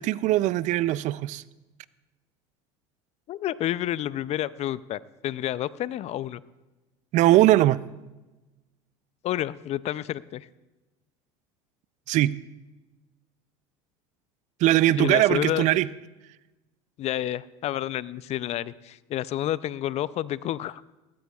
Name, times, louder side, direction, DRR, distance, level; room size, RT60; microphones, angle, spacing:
voice 1, 0.0-1.4 7.1-7.8 12.1-12.4 14.6-15.9, right 15 dB, 55° right, 18 dB, 0.5 m, -20 dB
voice 2, 3.3-6.4 9.2-10.5 15.0-15.7 17.0-20.8, left 13 dB, 45° left, 18 dB, 0.5 m, -29 dB
18.5 x 16.5 x 2.4 m, 1.1 s
hypercardioid pair, 80°, 15 cm